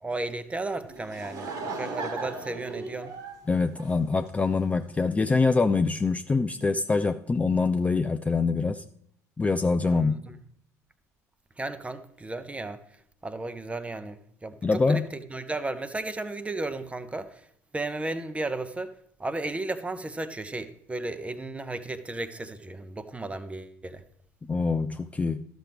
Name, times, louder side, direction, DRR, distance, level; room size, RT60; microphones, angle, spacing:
voice 1, 0.0-3.1 9.8-10.4 11.6-12.8 13.2-17.5 17.7-18.9 19.2-24.0, right 2 dB, 15° right, 0.8 m, -34 dB
Laughter / Crowd, 0.8-4.6, right 3 dB, 50° right, 1.5 m, -37 dB
voice 2, 3.5-8.8 9.4-10.2 14.6-15.0 24.4-25.4, left 4 dB, 15° left, 0.4 m, -24 dB
13.0 x 6.1 x 3.4 m
figure-of-eight pair, 60°, 9 cm